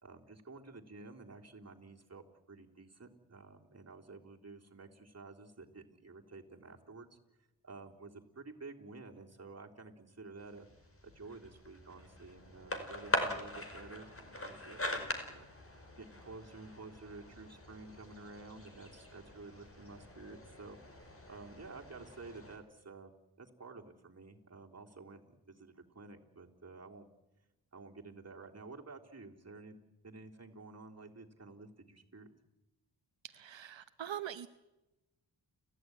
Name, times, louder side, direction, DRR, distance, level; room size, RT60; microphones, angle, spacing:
voice 1, 0.0-7.2 7.6-10.7 11.0-15.5 16.0-23.1 23.4-27.1 27.7-29.8 30.0-32.3, right 3 dB, 35° right, 1 dB, 3.6 m, -51 dB
sound 1, 10.4-22.6, left 1 dB, 30° left, 5.2 m, -42 dB
voice 2, 33.2-34.5, right 10 dB, 80° right, 10 dB, 0.9 m, -43 dB
30.0 x 14.5 x 9.6 m, 1.0 s
cardioid pair, 65°, 44 cm